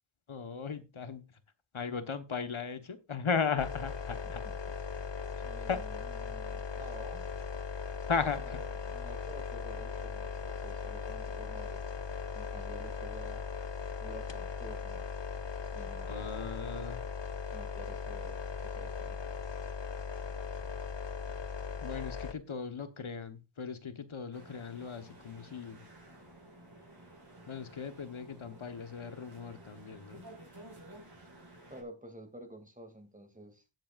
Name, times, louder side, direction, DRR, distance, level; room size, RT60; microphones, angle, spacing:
voice 1, 0.3-1.2 1.7-4.4 5.7-5.8 8.1-8.6 16.1-17.0 21.8-25.8 27.5-30.3, left 5 dB, 80° left, 10 dB, 1.2 m, -36 dB
sound 1, 3.6-22.3, left 5 dB, 60° left, 1.1 m, -39 dB
voice 2, 4.2-4.5 5.4-7.3 8.5-11.8 12.3-13.4 14.0-15.1 15.7-16.3 17.5-19.2 31.7-33.6, right 1 dB, 15° right, 7 dB, 2.4 m, -50 dB
sound 2, 24.3-31.8, right 1 dB, 50° right, 5.1 m, -53 dB
17.0 x 7.7 x 2.4 m, 0.26 s
wide cardioid pair, 60°, 48 cm